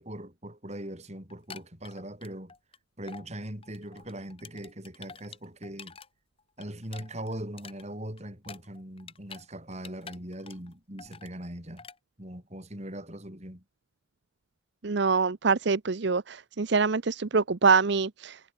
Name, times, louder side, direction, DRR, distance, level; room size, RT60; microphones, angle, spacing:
voice 1, 0.0-2.5 3.0-6.0 6.6-11.9 12.2-13.6, right 1 dB, 35° right, 6.4 m, -40 dB
sound 1, 1.3-2.8 3.1-3.3 3.6-6.1 6.4-9.5 9.7-10.7 11.0-11.3 11.8-12.0, left 5 dB, 30° left, 1.7 m, -48 dB
voice 2, 14.8-18.4, right 4 dB, 60° right, 0.7 m, -25 dB
head